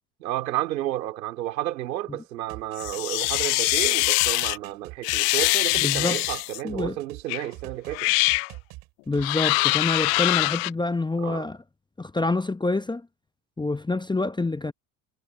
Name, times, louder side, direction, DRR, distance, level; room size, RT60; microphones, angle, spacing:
voice 1, 0.2-8.1 11.2-11.4, right 14 dB, 85° right, 3.4 m, -31 dB
sound 1, 2.5-7.2 7.5-9.2, right 21 dB, 65° right, 5.8 m, -43 dB
sound 2, 2.8-4.6 5.0-6.6 7.3-7.4 7.9-8.5 9.2-10.7, left 33 dB, 65° left, 0.5 m, -23 dB
voice 2, 5.8-6.2 6.6-7.0 9.1-11.6 12.0-13.1 13.6-14.7, left 2 dB, 10° left, 0.7 m, -27 dB
hypercardioid pair, 75°, 50 cm